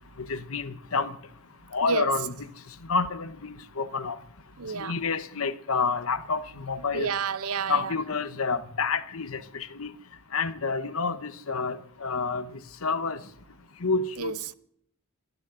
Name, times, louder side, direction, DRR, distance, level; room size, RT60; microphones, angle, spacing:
voice 1, 0.2-1.2 1.7-2.5 2.9-4.2 4.7-7.1 7.7-9.9 10.3-13.2 13.8-14.4, left 4 dB, 65° left, 1.0 m, -29 dB
voice 2, 1.8-2.1 4.6-5.0 6.9-7.9 14.2-14.5, right 5 dB, 80° right, 0.7 m, -30 dB
29.5 x 11.5 x 3.8 m
head